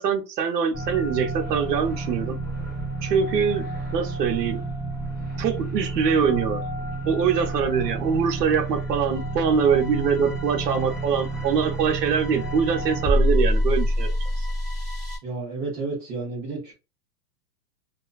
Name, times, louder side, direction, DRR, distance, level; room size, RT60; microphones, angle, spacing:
voice 1, 0.0-2.4 3.0-3.6 3.9-4.6 5.4-6.6 7.0-14.4, right 6 dB, 80° right, 0.8 m, -23 dB
sound 1, 0.7-15.2, right 1 dB, ahead, 0.9 m, -28 dB
voice 2, 15.2-16.7, right 3 dB, 15° right, 0.5 m, -31 dB
2.4 x 2.2 x 2.4 m
hypercardioid pair, 150°, 48 cm